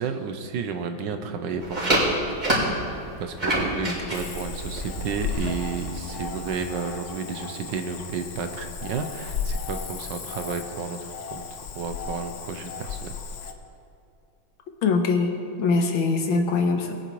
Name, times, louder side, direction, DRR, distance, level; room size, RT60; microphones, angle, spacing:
voice 1, 0.0-2.2 3.2-11.4 11.7-13.1, right 5 dB, 70° right, 7 dB, 1.3 m, -32 dB
sound 1, 1.6-6.7, right 1 dB, 20° right, 3.5 m, -28 dB
Cricket / Frog, 4.1-13.5, left 6 dB, 65° left, 0.7 m, -35 dB
voice 2, 14.8-17.0, left 4 dB, 80° left, 4 dB, 1.8 m, -23 dB
20.5 x 9.5 x 3.1 m, 2.6 s
omnidirectional pair, 2.2 m